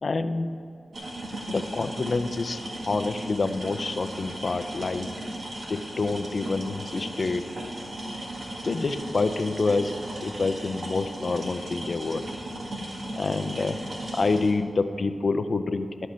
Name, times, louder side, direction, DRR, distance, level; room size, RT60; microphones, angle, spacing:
voice 1, 0.0-0.6 1.5-5.1 5.7-7.5 8.6-9.9 10.2-12.2 13.2-13.8 14.1-16.1, left 3 dB, 60° left, 10 dB, 0.5 m, -27 dB
sound 1, 0.9-14.5, right 1 dB, 80° right, 1.8 m, -36 dB
11.5 x 5.3 x 7.5 m, 2.8 s
wide cardioid pair, 90°, 0 cm